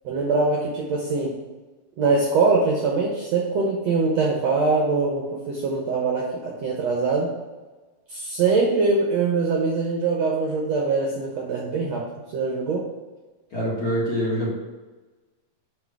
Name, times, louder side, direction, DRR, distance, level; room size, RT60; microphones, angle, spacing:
voice 1, 0.0-1.3 2.0-7.3 8.1-12.0 12.3-12.8, right 4 dB, 75° right, -2 dB, 1.5 m, -23 dB
voice 2, 13.5-14.5, equal, 40° left, -6 dB, 1.5 m, -25 dB
6.4 x 5.3 x 5.8 m, 1.2 s
omnidirectional pair, 4.4 m